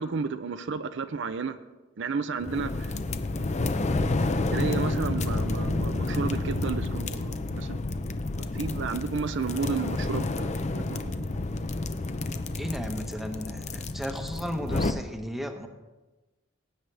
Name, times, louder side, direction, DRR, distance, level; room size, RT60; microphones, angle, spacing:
voice 1, 0.0-1.6 2.0-3.0 3.2-3.6 4.2-7.8 8.4-11.3, right 5 dB, 65° right, 0.5 m, -32 dB
sound 1, 2.4-14.9, left 2 dB, 35° left, 0.6 m, -30 dB
voice 2, 12.6-15.7, equal, ahead, 1.0 m, -34 dB
18.5 x 9.0 x 3.4 m
head